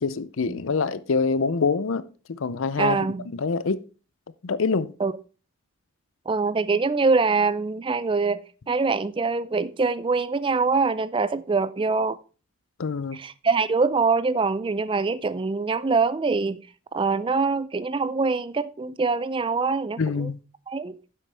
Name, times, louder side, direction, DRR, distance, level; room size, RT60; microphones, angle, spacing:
voice 1, 0.0-2.0 2.3-3.1 3.3-3.8 4.4-4.9 12.8-13.2 20.0-20.4, left 4 dB, 70° left, 0.6 m, -25 dB
voice 2, 2.8-3.3 5.0-5.1 6.3-12.2 13.1-16.6 16.9-20.3 20.7-21.0, right 4 dB, 25° right, 0.4 m, -24 dB
10.0 x 7.6 x 3.4 m
head